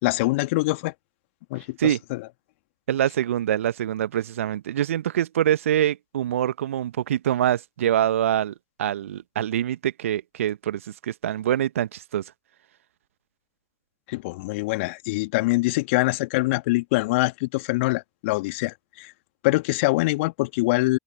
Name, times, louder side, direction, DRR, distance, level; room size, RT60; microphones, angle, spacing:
voice 1, 0.0-0.9 1.5-2.2 14.1-19.1 19.4-21.0, left 22 dB, 60° left, 1.8 m, -24 dB
voice 2, 2.9-12.2, right 11 dB, 70° right, 1.4 m, -25 dB
open air
figure-of-eight pair, 80°, 8 cm